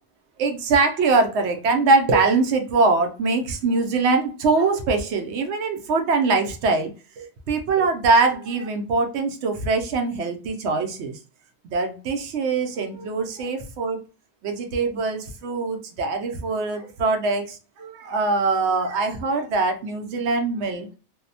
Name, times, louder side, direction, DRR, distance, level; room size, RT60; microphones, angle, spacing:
voice 1, 0.4-11.2 11.6-14.0 14.4-21.0, right 3 dB, 80° right, 0.9 m, -23 dB
2.7 x 2.1 x 2.6 m
omnidirectional pair, 1.2 m